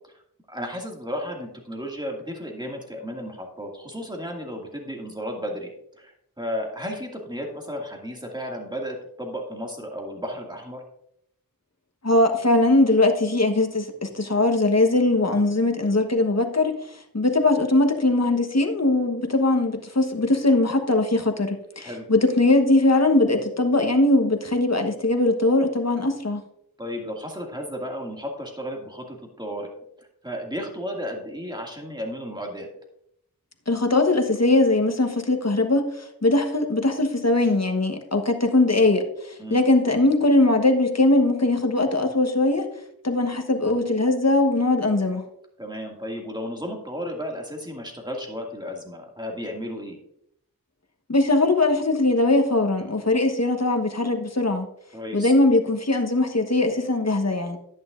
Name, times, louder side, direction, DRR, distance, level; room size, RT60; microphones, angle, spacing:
voice 1, 0.5-5.7 6.0-10.8 21.8-22.1 26.8-29.7 30.0-32.7 39.4-39.6 45.6-50.0 54.9-55.3, equal, 10° right, 0 dB, 2.2 m, -33 dB
voice 2, 12.0-16.8 17.1-26.5 33.7-42.7 43.0-45.2 51.1-54.7 55.1-57.6, left 2 dB, 45° left, 5 dB, 1.2 m, -21 dB
10.5 x 9.5 x 2.5 m, 0.74 s
wide cardioid pair, 40°, 36 cm